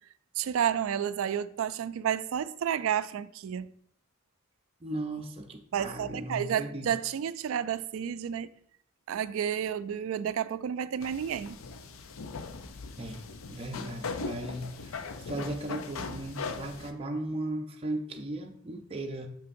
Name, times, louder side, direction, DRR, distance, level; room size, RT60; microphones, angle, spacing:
voice 1, 0.4-3.7 5.7-8.5 9.1-11.6, right 9 dB, 75° right, 0.3 m, -31 dB
voice 2, 4.8-6.9 13.0-19.3, right 1 dB, 30° right, 0.5 m, -37 dB
sound 1, 11.0-16.9, left 4 dB, 80° left, 0.5 m, -39 dB
7.0 x 5.6 x 2.6 m
head